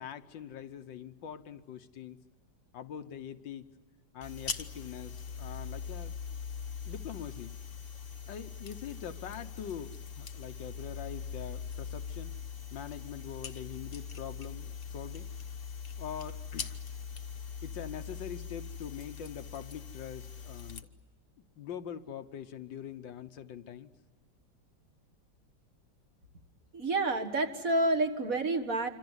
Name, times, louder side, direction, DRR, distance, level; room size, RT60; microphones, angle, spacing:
voice 1, 0.0-2.2 2.7-3.7 4.1-6.2 6.9-7.6 8.3-12.4 12.7-15.3 16.0-16.8 17.6-20.9 21.4-23.9, left 9 dB, 75° left, 9 dB, 1.7 m, -43 dB
sound 1, 4.2-20.8, left 6 dB, 40° left, 1.0 m, -42 dB
voice 2, 26.7-28.9, right 2 dB, 50° right, 7 dB, 2.0 m, -29 dB
26.5 x 26.0 x 8.0 m, 1.5 s
omnidirectional pair, 2.0 m